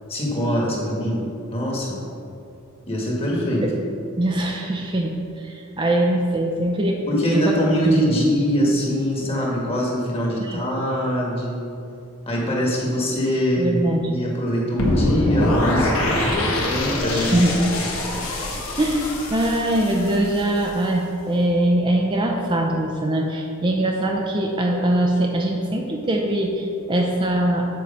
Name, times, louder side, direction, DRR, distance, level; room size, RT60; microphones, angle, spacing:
voice 1, 0.1-1.2 1.5-2.0 2.9-3.6 7.1-11.6 12.3-16.1 16.7-17.5, equal, 30° left, -3 dB, 1.5 m, -23 dB
voice 2, 4.2-7.0 7.3-7.5 7.8-8.0 10.4-10.6 13.6-14.2 17.1-17.6 18.8-27.7, right 1 dB, 25° right, 1 dB, 0.5 m, -22 dB
sound 1, 14.8-20.8, left 1 dB, 85° left, 1.3 m, -24 dB
7.6 x 4.6 x 5.3 m, 2.7 s
head